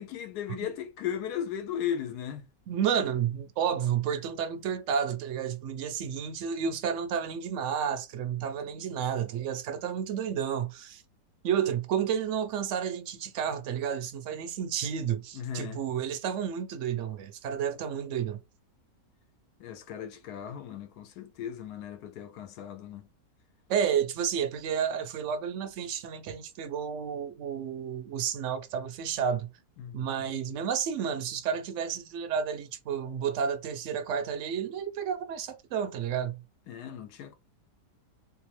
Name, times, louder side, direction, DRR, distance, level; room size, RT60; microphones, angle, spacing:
voice 1, 0.0-2.5 15.3-15.8 19.6-23.1 29.8-30.1 36.7-37.3, left 9 dB, 75° left, 1.1 m, -36 dB
voice 2, 2.7-11.0 11.4-18.4 23.7-29.5 29.9-36.4, right 8 dB, 65° right, 0.8 m, -31 dB
3.3 x 2.8 x 3.1 m
omnidirectional pair, 1.8 m